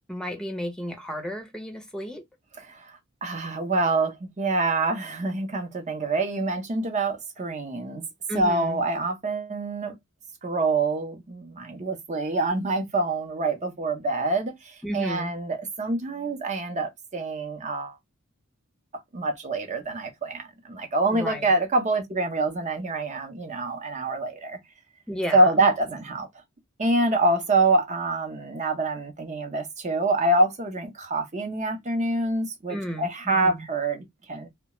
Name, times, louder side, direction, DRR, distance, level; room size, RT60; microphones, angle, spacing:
voice 1, 0.1-2.2 8.3-8.8 14.8-15.3 21.1-21.5 25.1-25.7 32.7-33.6, equal, 5° left, 0.6 m, -33 dB
voice 2, 2.6-8.0 8.3-9.9 10.4-18.0 19.1-24.6 25.3-26.3 26.8-34.5, right 2 dB, 35° right, 0.7 m, -26 dB
2.2 x 2.1 x 2.9 m
head